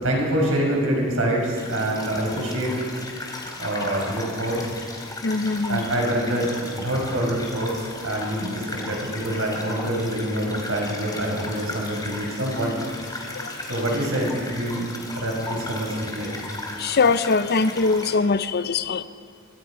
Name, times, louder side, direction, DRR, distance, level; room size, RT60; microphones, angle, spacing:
voice 1, 0.0-2.9 3.6-4.7 5.7-12.8 13.7-16.3, right 1 dB, 75° right, -1 dB, 6.2 m, -26 dB
sound 1, 1.4-18.1, left 2 dB, 20° left, 3.3 m, -36 dB
voice 2, 5.2-5.8 13.4-13.5 16.8-19.0, left 4 dB, 50° left, 12 dB, 0.7 m, -22 dB
26.0 x 23.0 x 5.1 m, 2.2 s
head